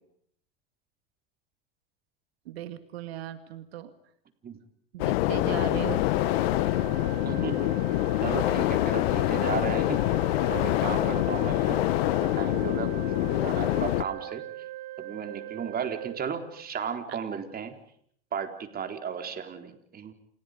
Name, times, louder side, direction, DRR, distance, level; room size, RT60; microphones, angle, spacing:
voice 1, 2.5-3.9 4.9-6.1 17.1-17.2, right 12 dB, 85° right, 10 dB, 2.2 m, -37 dB
sound 1, 5.0-14.0, left 18 dB, 75° left, 1.1 m, -26 dB
Organ, 5.8-16.9, right 15 dB, 60° right, 2.4 m, -41 dB
voice 2, 7.2-7.7 8.2-10.1 10.5-11.9 12.1-14.4 15.0-17.8 18.3-20.1, right 7 dB, 30° right, 6 dB, 4.0 m, -35 dB
29.0 x 29.0 x 5.2 m, 0.67 s
supercardioid pair, 110°, 30 cm